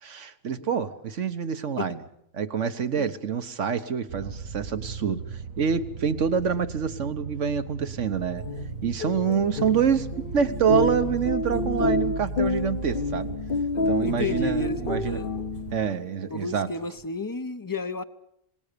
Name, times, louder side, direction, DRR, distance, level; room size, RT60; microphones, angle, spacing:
voice 1, 0.0-2.0 2.3-8.4 8.8-13.3 13.9-15.2 15.7-16.7, right 7 dB, 65° right, 11 dB, 1.5 m, -26 dB
sound 1, 4.1-15.9, right 5 dB, 80° right, 1.6 m, -37 dB
sound 2, 8.3-15.9, left 3 dB, 45° left, 1.2 m, -29 dB
voice 2, 14.0-15.3 16.3-18.0, left 3 dB, 20° left, 12 dB, 0.8 m, -31 dB
27.5 x 19.0 x 6.8 m, 0.74 s
omnidirectional pair, 1.4 m